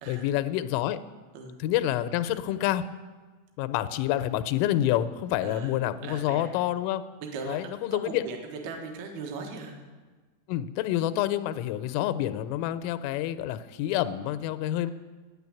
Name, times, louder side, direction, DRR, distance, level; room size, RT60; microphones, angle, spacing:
voice 1, 0.1-1.0 1.6-2.8 3.6-7.0 7.4-8.2 10.5-14.9, left 13 dB, 90° left, 12 dB, 3.1 m, -28 dB
voice 2, 5.4-5.7 6.0-6.5 7.3-7.6 7.9-8.4 8.6-9.8, right 4 dB, 65° right, 2 dB, 3.0 m, -38 dB
9.6 x 9.6 x 8.3 m, 1.3 s
omnidirectional pair, 5.5 m